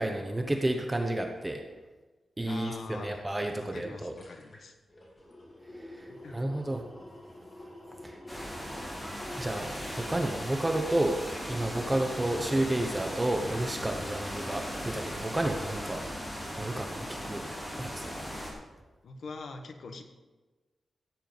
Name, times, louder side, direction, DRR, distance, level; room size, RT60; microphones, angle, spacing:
voice 1, 0.0-1.6 2.4-4.1 5.8-6.1 6.3-6.8 8.0-8.2 9.4-11.2 11.5-16.0 16.6-17.4 17.8-18.1, right 1 dB, 15° right, 3 dB, 0.9 m, -31 dB
voice 2, 2.4-3.2 3.6-4.7 6.1-6.4 19.0-20.0, left 4 dB, 70° left, 5 dB, 1.3 m, -43 dB
sound 1, 3.5-3.6 3.9-12.9 13.3-13.4, left 1 dB, 30° left, 2.6 m, -48 dB
sound 2, 8.3-18.5, equal, 10° left, 3.2 m, -38 dB
15.0 x 9.0 x 4.0 m, 1.2 s
wide cardioid pair, 130°, 0 cm